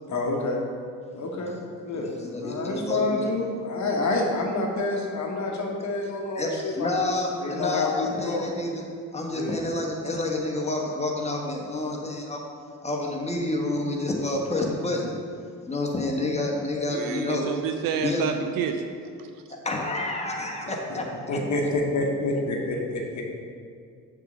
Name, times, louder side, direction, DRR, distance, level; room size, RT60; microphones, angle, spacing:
voice 1, 0.1-0.6 1.2-7.1 7.4-8.6 9.3-9.6 20.4-20.5 20.9-21.0 21.3-23.2, left 2 dB, 40° left, 0 dB, 1.3 m, -28 dB
voice 2, 1.1-1.5 1.9-3.2 6.3-8.8 9.1-12.4 12.8-15.2 15.7-17.5 18.0-18.3 19.5-21.4, left 2 dB, 15° left, -1 dB, 1.3 m, -29 dB
voice 3, 16.9-18.9 19.2-19.3, right 7 dB, 50° right, 6 dB, 0.5 m, -29 dB
6.7 x 3.8 x 6.4 m, 2.3 s
figure-of-eight pair, 45°, 45 cm